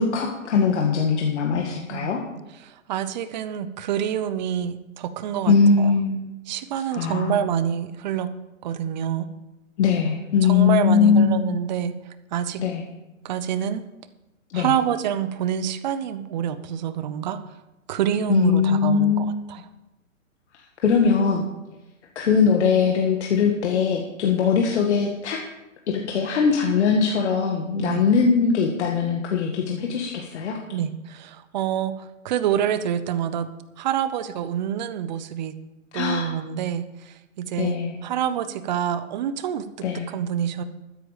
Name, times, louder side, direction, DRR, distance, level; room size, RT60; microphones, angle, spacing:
voice 1, 0.0-2.2 5.5-6.3 6.9-7.5 9.8-11.6 12.6-12.8 14.5-14.7 18.3-19.3 20.8-21.4 22.2-25.4 25.9-30.6 35.9-36.3 37.6-38.0 39.8-40.1, left 6 dB, 55° left, 1 dB, 1.7 m, -21 dB
voice 2, 2.6-5.9 6.5-8.3 8.6-9.3 10.4-11.9 12.3-12.6 13.2-13.8 14.5-17.4 17.9-19.6 27.8-28.0 30.7-33.5 33.8-35.6 35.9-39.6 40.1-40.6, right 9 dB, 35° right, 13 dB, 0.8 m, -27 dB
12.5 x 10.0 x 5.1 m, 0.99 s
hypercardioid pair, 145°, 40 cm